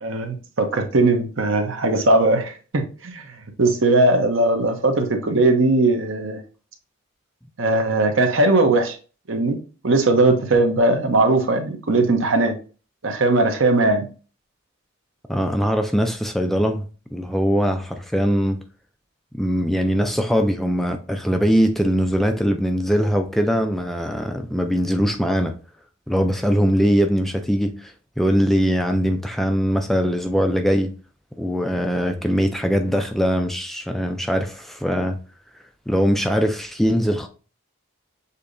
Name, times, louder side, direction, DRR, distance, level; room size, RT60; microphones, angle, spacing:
voice 1, 0.0-3.2 3.6-6.4 7.6-9.0 9.3-9.6 9.8-12.5 13.0-14.0, right 2 dB, 70° right, 0.8 m, -19 dB
voice 2, 15.3-16.9 17.1-18.6 19.3-25.5 26.1-30.9 31.4-35.2 35.9-37.3, equal, ahead, 0.3 m, -21 dB
6.6 x 2.8 x 2.6 m
head